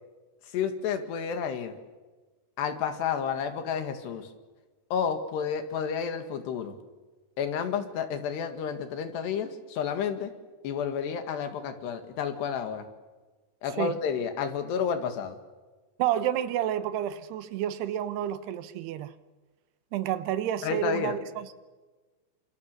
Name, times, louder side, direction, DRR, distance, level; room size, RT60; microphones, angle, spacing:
voice 1, 0.5-1.8 2.6-4.3 4.9-6.8 7.4-10.3 10.6-12.9 13.6-15.4 20.6-21.1, left 7 dB, 80° left, 8 dB, 4.0 m, -31 dB
voice 2, 16.0-19.1 19.9-21.5, right 11 dB, 75° right, 13 dB, 3.1 m, -30 dB
28.5 x 26.0 x 6.8 m, 1.3 s
omnidirectional pair, 4.8 m